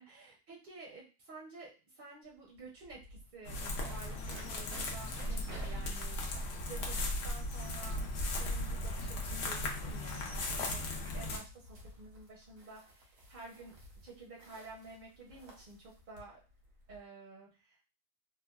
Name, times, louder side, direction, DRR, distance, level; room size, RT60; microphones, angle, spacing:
voice 1, 0.0-6.4 6.7-7.0 7.2-8.1 8.4-10.8 11.1-16.4 16.9-17.8, right 3 dB, 50° right, -2 dB, 0.6 m, -51 dB
sound 1, 2.2-2.3 2.5-17.0, equal, 85° right, 1.3 m, -55 dB
sound 2, 3.4-11.4, left 1 dB, 70° left, 0.9 m, -37 dB
3.2 x 2.1 x 2.2 m, 0.33 s
omnidirectional pair, 1.4 m